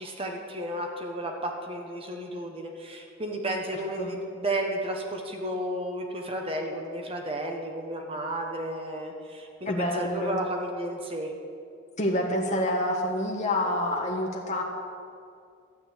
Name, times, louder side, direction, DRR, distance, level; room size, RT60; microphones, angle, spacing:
voice 1, 0.0-11.3, right 1 dB, 25° right, 2 dB, 1.2 m, -33 dB
voice 2, 9.7-10.4 12.0-14.6, left 1 dB, 35° left, -1 dB, 1.4 m, -27 dB
13.0 x 8.4 x 8.3 m, 2.4 s
head